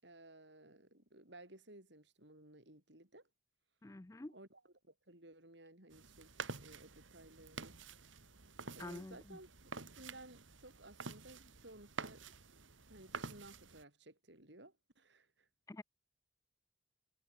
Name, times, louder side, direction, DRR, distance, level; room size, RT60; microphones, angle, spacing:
voice 1, 0.0-3.3 4.3-6.3 6.6-7.7 8.7-9.5 9.8-12.2 12.6-15.5, right 1 dB, 70° right, 5.9 m, -57 dB
voice 2, 3.8-4.3 8.8-9.4 15.7-15.8, left 2 dB, 15° left, 0.4 m, -48 dB
sound 1, 5.9-13.8, right 4 dB, 90° right, 3.1 m, -49 dB
head